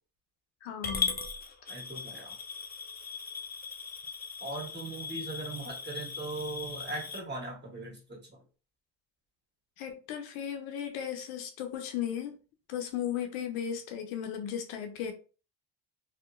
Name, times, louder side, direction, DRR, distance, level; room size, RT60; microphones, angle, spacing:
voice 1, 0.6-1.2 9.8-12.4 12.7-15.1, left 9 dB, 75° left, 0.6 m, -36 dB
Coin (dropping) / Glass, 0.8-7.2, left 5 dB, 20° left, 0.4 m, -38 dB
voice 2, 1.7-2.3 4.4-8.4, right 2 dB, 20° right, 1.4 m, -39 dB
2.7 x 2.1 x 2.4 m
supercardioid pair, 70°, 49 cm